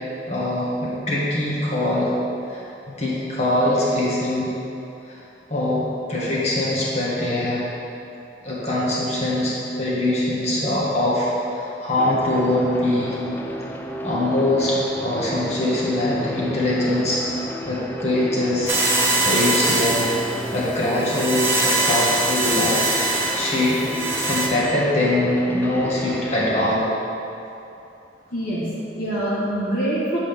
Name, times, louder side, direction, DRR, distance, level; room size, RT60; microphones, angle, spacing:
voice 1, 0.3-2.1 2.5-4.5 5.1-5.2 5.5-7.6 8.4-13.2 14.0-17.3 17.7-18.8 19.2-20.1 20.5-22.8 23.1-23.8 24.3-26.9, left 1 dB, 40° left, -7 dB, 1.7 m, -23 dB
sound 1, 12.0-26.8, equal, 10° left, 0.4 m, -33 dB
sound 2, 18.7-24.5, right 2 dB, 15° right, 1.3 m, -23 dB
voice 2, 28.3-30.2, right 1 dB, 55° left, -9 dB, 1.5 m, -25 dB
8.0 x 7.6 x 3.6 m, 2.8 s
head